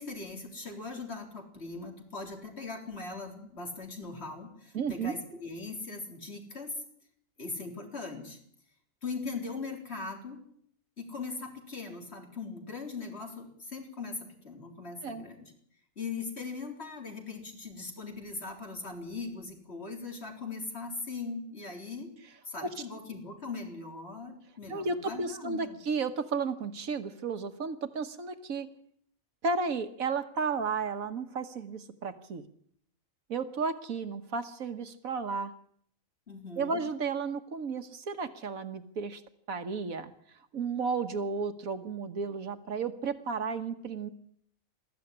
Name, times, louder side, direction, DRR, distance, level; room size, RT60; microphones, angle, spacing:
voice 1, 0.0-6.7 7.4-8.4 9.0-10.4 11.0-15.5 16.0-22.1 22.4-25.8 36.3-36.8, left 4 dB, 50° left, 2 dB, 4.3 m, -40 dB
voice 2, 4.7-5.1 15.0-15.3 24.7-28.7 29.4-32.4 33.3-35.5 36.6-39.2 39.5-40.1 40.5-44.1, right 4 dB, 80° right, 10 dB, 1.6 m, -33 dB
22.0 x 14.0 x 10.0 m, 0.67 s
omnidirectional pair, 1.4 m